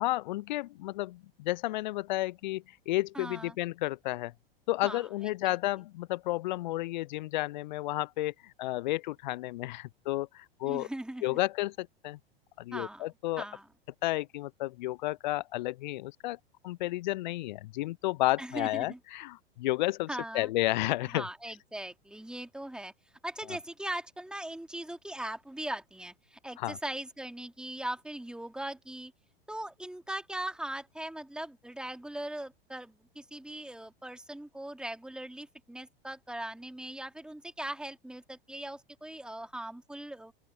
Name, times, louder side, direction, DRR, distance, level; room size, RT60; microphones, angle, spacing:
voice 1, 0.0-4.3 4.7-10.9 11.2-12.2 12.6-13.4 14.0-16.4 16.6-20.1 20.3-21.3 23.5-23.6 26.6-26.8, left 18 dB, 50° left, 0.8 m, -32 dB
voice 2, 3.1-3.5 4.8-5.1 5.4-5.6 10.6-11.4 12.7-13.1 13.4-13.6 18.4-19.0 20.1-20.5 21.1-22.9 23.2-29.1 29.5-40.3, right 1 dB, 5° right, 2.7 m, -40 dB
open air
figure-of-eight pair, 90°, 30 cm